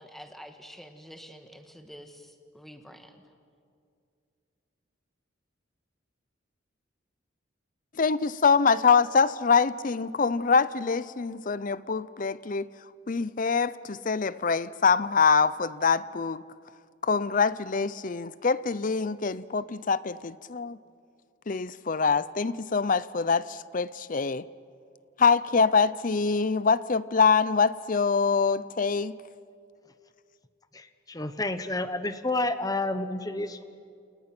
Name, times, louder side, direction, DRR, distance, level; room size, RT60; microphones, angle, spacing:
voice 1, 0.0-3.2, equal, ahead, 6 dB, 1.6 m, -47 dB
voice 2, 8.0-12.7 13.1-16.4 17.0-20.8 21.5-24.5 25.2-29.2, left 5 dB, 40° left, 17 dB, 0.6 m, -24 dB
voice 3, 30.7-33.6, left 2 dB, 20° left, 11 dB, 1.0 m, -30 dB
30.0 x 28.5 x 6.1 m, 2.4 s
head